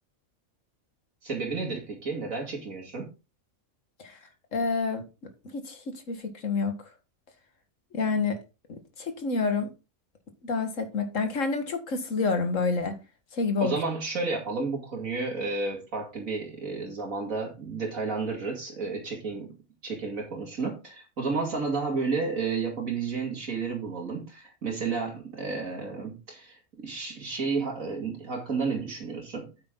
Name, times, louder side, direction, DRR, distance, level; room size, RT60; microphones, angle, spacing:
voice 1, 1.2-3.1 13.6-19.5 19.8-29.5, right 4 dB, 70° right, 2.9 m, -31 dB
voice 2, 4.5-5.0 5.4-6.7 7.9-8.4 8.7-9.7 10.4-13.0 13.3-13.7, left 4 dB, 65° left, 2.1 m, -28 dB
8.7 x 8.6 x 3.9 m
omnidirectional pair, 1.4 m